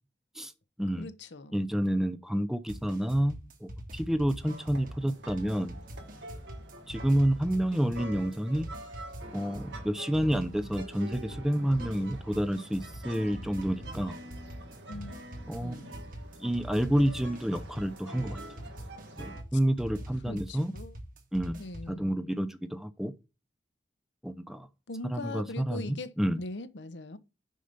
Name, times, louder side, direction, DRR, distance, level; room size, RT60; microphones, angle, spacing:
voice 1, 1.0-1.6 14.9-15.1 15.6-15.9 20.2-21.0 21.6-22.4 24.9-26.1 26.4-27.2, left 2 dB, 80° left, 0.8 m, -41 dB
voice 2, 1.5-5.8 6.9-8.7 9.3-14.1 15.5-15.8 16.4-18.4 19.2-20.7 21.3-21.6 21.9-23.1 24.2-24.7 25.1-26.4, equal, ahead, 0.5 m, -29 dB
sound 1, 2.7-21.9, equal, 50° right, 1.8 m, -43 dB
sound 2, 4.4-19.4, right 1 dB, 80° right, 1.9 m, -46 dB
6.5 x 5.5 x 6.7 m
head